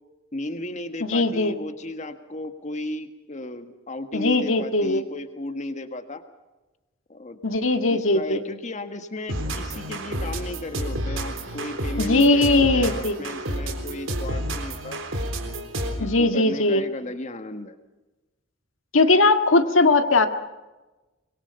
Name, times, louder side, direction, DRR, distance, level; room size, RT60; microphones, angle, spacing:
voice 1, 0.3-6.2 7.1-7.4 7.9-15.0 15.8-17.8, left 1 dB, 35° left, 8 dB, 1.7 m, -34 dB
voice 2, 1.0-1.6 4.1-5.0 7.4-8.4 12.0-13.2 16.0-16.8 18.9-20.3, left 2 dB, 90° left, 7 dB, 1.8 m, -19 dB
sound 1, 9.3-16.1, right 1 dB, 80° right, 3.7 m, -30 dB
25.0 x 22.0 x 5.5 m, 1.1 s
head